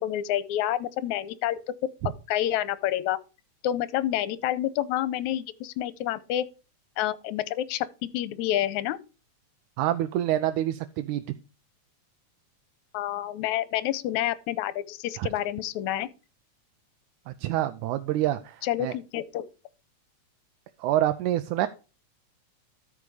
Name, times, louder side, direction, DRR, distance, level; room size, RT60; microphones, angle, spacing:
voice 1, 0.0-1.6 2.3-3.2 3.6-6.5 7.0-9.0 12.9-16.1 18.6-19.4, left 12 dB, 80° left, 2.0 m, -28 dB
voice 2, 9.8-11.2 15.2-15.3 17.3-19.0 20.8-21.7, right 13 dB, 85° right, 2.1 m, -27 dB
13.0 x 5.3 x 4.8 m
omnidirectional pair, 3.5 m